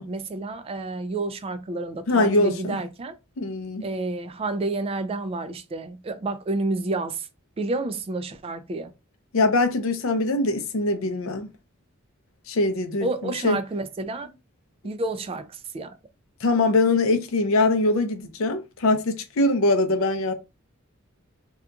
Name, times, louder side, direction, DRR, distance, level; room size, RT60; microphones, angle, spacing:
voice 1, 0.0-3.2 3.8-7.3 7.6-8.9 13.0-14.3 14.8-15.9, right 2 dB, 30° right, 0.3 m, -30 dB
voice 2, 2.1-2.8 3.4-3.9 9.3-11.5 12.5-13.6 16.4-20.3, left 2 dB, 75° left, 0.5 m, -22 dB
2.8 x 2.3 x 2.3 m
head